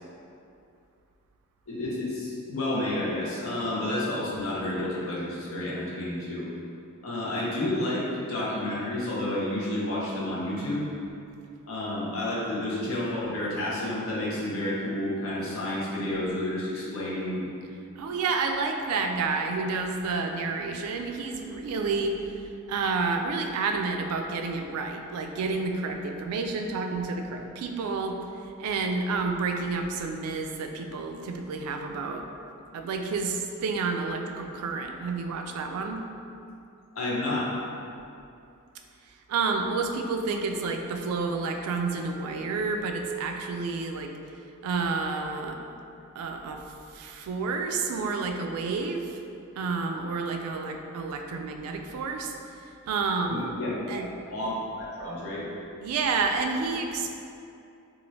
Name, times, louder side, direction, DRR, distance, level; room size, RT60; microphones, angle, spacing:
voice 1, 1.7-6.5 7.0-10.9 11.7-17.5 37.0-37.5 53.3-53.7 54.2-55.4, left 1 dB, 65° left, -7 dB, 0.7 m, -30 dB
voice 2, 18.0-22.2 22.7-28.2 28.6-32.3 32.7-36.1 39.3-44.1 44.6-45.6 46.2-46.6 46.9-49.2 49.6-52.3 52.9-53.5 53.9-54.1 55.8-57.1, right 4 dB, 80° right, 9 dB, 0.3 m, -30 dB
3.1 x 2.4 x 2.7 m, 2.6 s
head